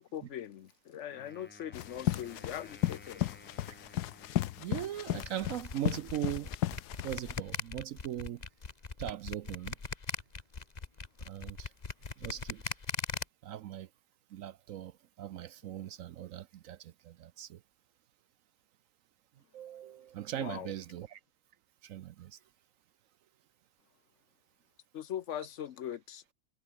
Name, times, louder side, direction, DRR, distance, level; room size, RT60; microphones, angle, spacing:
voice 1, 0.0-3.3 20.4-20.7 24.9-26.2, left 10 dB, 60° left, 0.9 m, -41 dB
Wind instrument woodwind instrument, 1.1-5.4, left 1 dB, 5° left, 1.4 m, -56 dB
sound 1, 1.7-7.4, left 14 dB, 85° left, 1.2 m, -35 dB
voice 2, 4.6-6.5 7.0-8.4 9.0-9.7 11.3-11.7 12.2-12.7 13.4-13.9 14.3-17.6 19.5-21.2 21.8-22.4, right 12 dB, 65° right, 0.9 m, -40 dB
sound 2, 5.2-13.2, left 4 dB, 30° left, 1.3 m, -39 dB
omnidirectional pair, 1.7 m